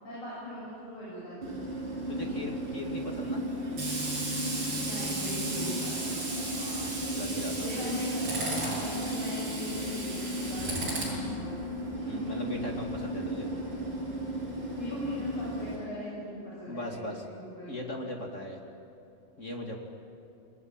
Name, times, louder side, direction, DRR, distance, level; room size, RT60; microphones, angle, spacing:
voice 1, 0.0-1.6 4.7-6.2 7.6-11.7 14.8-17.8, left 1 dB, 45° left, -7 dB, 8.8 m, -39 dB
Tools, 1.4-15.8, right 1 dB, 30° right, 7.4 m, -33 dB
voice 2, 2.1-3.4 6.5-7.9 12.0-13.5 16.7-17.3 17.7-18.6 19.4-19.8, left 1 dB, 25° left, 1 dB, 2.1 m, -38 dB
28.0 x 20.0 x 8.8 m, 2.7 s
omnidirectional pair, 4.0 m